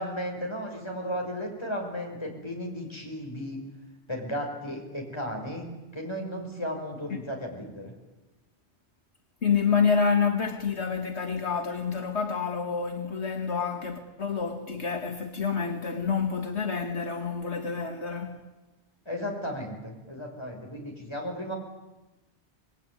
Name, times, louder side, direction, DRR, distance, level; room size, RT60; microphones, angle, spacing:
voice 1, 0.0-3.6 4.1-5.7 5.9-7.9 19.1-21.6, equal, 25° left, 5.8 m, -34 dB
voice 2, 9.4-18.4, left 6 dB, 75° left, 2.1 m, -28 dB
26.5 x 20.5 x 9.6 m
omnidirectional pair, 1.1 m